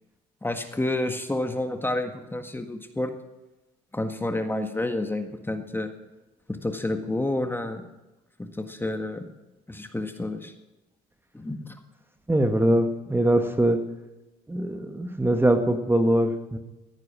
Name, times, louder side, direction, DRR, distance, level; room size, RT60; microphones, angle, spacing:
voice 1, 0.4-3.1 3.9-5.9 6.5-7.8 8.4-9.3 9.7-10.5 11.3-11.8, left 1 dB, 10° left, 6 dB, 1.7 m, -29 dB
voice 2, 12.3-13.8 14.5-16.6, right 1 dB, 10° right, 7 dB, 1.6 m, -22 dB
15.0 x 9.6 x 6.2 m, 1.0 s
hypercardioid pair, 70°, 19 cm